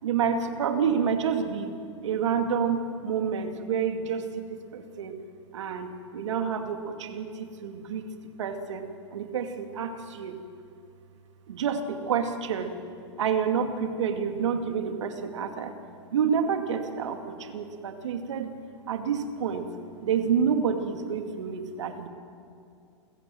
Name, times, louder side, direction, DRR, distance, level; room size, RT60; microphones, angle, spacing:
voice 1, 0.0-1.8 2.0-5.1 5.5-8.1 8.4-10.3 11.5-12.7 13.2-15.7 16.1-18.5 18.9-19.7 20.0-22.1, right 7 dB, 75° right, 6 dB, 2.4 m, -28 dB
28.5 x 16.0 x 7.7 m, 2.4 s
hypercardioid pair, 110°, 15 cm